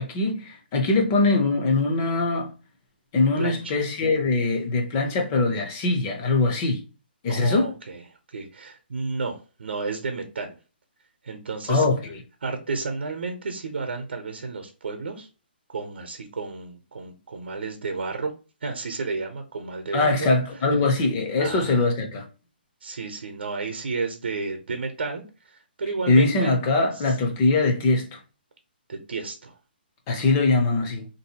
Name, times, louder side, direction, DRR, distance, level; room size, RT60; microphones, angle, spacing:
voice 1, 0.0-2.5 3.1-6.8 7.2-7.7 11.7-12.0 19.9-22.2 26.1-28.2 30.1-31.1, left 3 dB, 15° left, 0.5 m, -22 dB
voice 2, 3.4-3.7 7.3-8.0 8.3-10.6 11.2-11.8 12.4-15.3 15.7-18.3 18.6-20.3 21.4-21.9 22.8-26.6 26.9-27.2 28.9-29.6, right 4 dB, 75° right, 0.7 m, -32 dB
3.7 x 2.7 x 2.8 m
hypercardioid pair, 175°, 6 cm